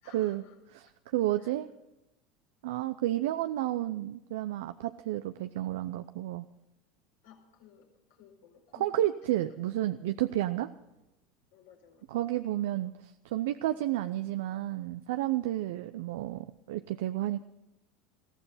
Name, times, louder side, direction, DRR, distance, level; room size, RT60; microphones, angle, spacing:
voice 1, 0.0-0.6 1.4-1.6 7.2-9.7 10.3-10.4 11.5-12.1, left 8 dB, 70° left, 0 dB, 4.8 m, -57 dB
voice 2, 1.1-1.7 2.6-6.5 8.8-10.7 12.1-17.4, right 14 dB, 65° right, 10 dB, 0.6 m, -31 dB
21.0 x 15.5 x 4.2 m, 0.92 s
figure-of-eight pair, 75°, 0 cm